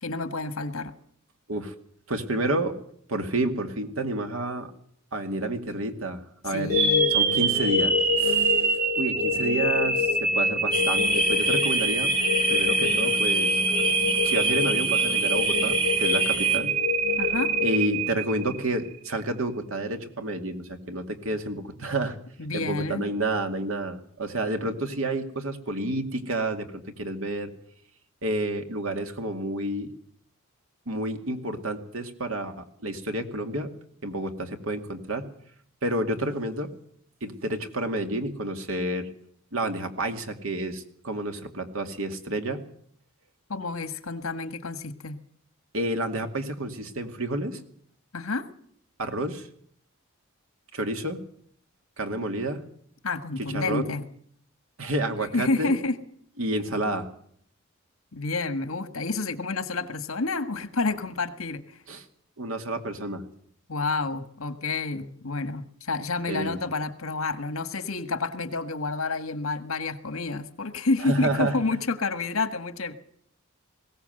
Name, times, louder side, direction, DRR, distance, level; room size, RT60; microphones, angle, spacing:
voice 1, 0.0-0.9 6.5-7.1 17.2-17.5 22.4-23.1 43.5-45.2 48.1-48.5 53.0-54.0 55.3-56.0 58.1-61.8 63.7-73.0, left 3 dB, 75° left, 10 dB, 1.7 m, -29 dB
voice 2, 2.1-2.7 3.1-4.7 5.1-6.7 7.1-12.1 12.5-13.6 14.2-16.8 17.6-22.2 22.5-27.5 28.2-29.9 30.9-33.7 34.0-35.3 35.8-36.7 37.2-39.1 39.5-42.6 45.7-47.6 49.0-49.5 50.7-51.2 52.0-52.6 53.4-53.9 54.8-55.8 56.4-57.1 61.9-62.0 62.4-63.2 66.3-66.6 71.0-71.6, right 2 dB, 70° right, 6 dB, 2.3 m, -30 dB
sound 1, 6.7-18.8, right 1 dB, 45° right, 2.4 m, -24 dB
sound 2, 10.7-16.6, equal, 20° right, 4.2 m, -28 dB
21.0 x 17.0 x 7.9 m, 0.64 s
head